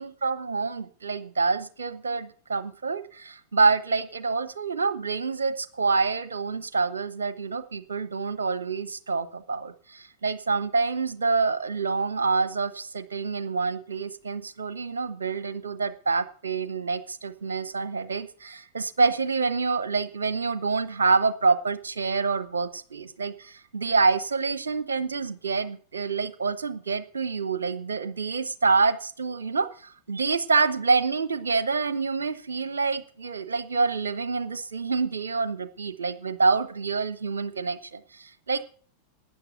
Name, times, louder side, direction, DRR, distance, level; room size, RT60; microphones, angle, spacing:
voice 1, 0.0-38.6, right 4 dB, 70° right, 14 dB, 1.1 m, -27 dB
12.0 x 9.5 x 8.0 m, 0.43 s
figure-of-eight pair, 90°, 0 cm